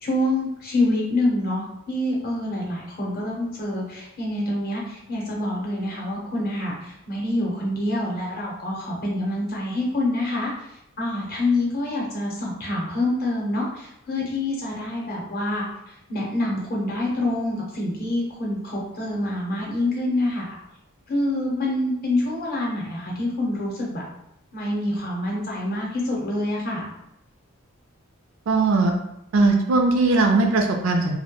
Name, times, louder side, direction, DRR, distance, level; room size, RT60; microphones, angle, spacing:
voice 1, 0.0-10.5 11.0-15.6 16.1-20.6 21.1-24.0 24.5-26.9, left 1 dB, 45° left, -3 dB, 0.7 m, -26 dB
voice 2, 28.5-29.0 29.3-31.2, right 3 dB, 65° right, 3 dB, 0.3 m, -19 dB
2.2 x 2.1 x 2.9 m, 0.83 s
head